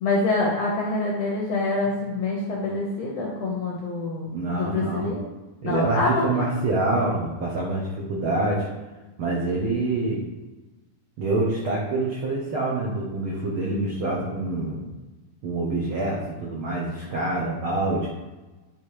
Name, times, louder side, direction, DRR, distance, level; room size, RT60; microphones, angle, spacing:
voice 1, 0.0-5.2 5.6-6.5, left 2 dB, 75° left, -2 dB, 1.5 m, -26 dB
voice 2, 4.3-5.1 5.6-8.7 9.2-10.2 11.2-14.8 15.4-18.1, right 2 dB, 80° right, -3 dB, 1.1 m, -26 dB
10.0 x 3.7 x 4.9 m, 1.2 s
omnidirectional pair, 4.0 m